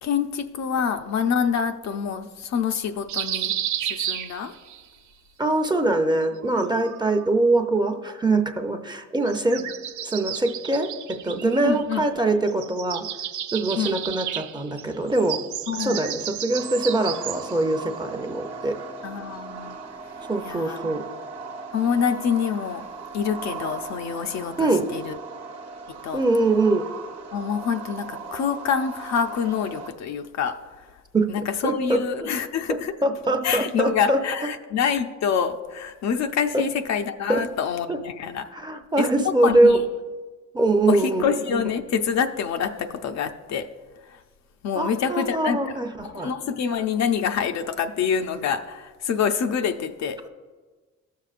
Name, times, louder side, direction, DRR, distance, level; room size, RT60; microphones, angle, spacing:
voice 1, 0.0-3.5 3.8-4.5 11.6-12.0 13.7-13.9 15.7-16.0 19.0-19.8 20.4-20.8 21.7-22.8 23.1-25.2 26.0-26.2 27.3-30.9 31.3-32.9 33.4-38.5 39.0-39.8 40.9-43.7 44.1-44.2 44.6-50.2, left 7 dB, 65° left, 7 dB, 0.6 m, -26 dB
sound 1, 3.1-4.8 6.2-7.3 9.2-12.2 12.5-17.6, right 10 dB, 75° right, 0.5 m, -32 dB
voice 2, 5.4-9.6 10.0-13.0 13.5-15.4 15.8-18.8 20.3-21.0 24.6-24.9 26.1-26.9 31.1-31.3 31.6-32.0 32.7-34.2 36.5-36.6 37.3-37.4 37.9-38.0 38.5-39.8 40.5-41.3 41.5-41.6 44.8-46.3, right 2 dB, 15° right, 5 dB, 0.7 m, -23 dB
sound 2, 16.5-29.9, right 4 dB, 55° right, 1.1 m, -38 dB
14.0 x 6.5 x 2.5 m, 1.4 s
cardioid pair, 90°, 30 cm